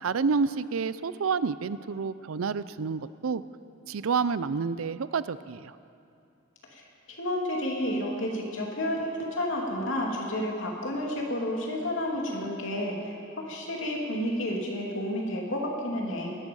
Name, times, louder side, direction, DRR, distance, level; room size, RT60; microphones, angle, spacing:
voice 1, 0.0-3.4 3.9-5.7, right 5 dB, 85° right, 16 dB, 0.5 m, -29 dB
voice 2, 6.7-16.4, left 1 dB, 65° left, -1 dB, 2.9 m, -31 dB
19.5 x 13.5 x 5.5 m, 2.6 s
head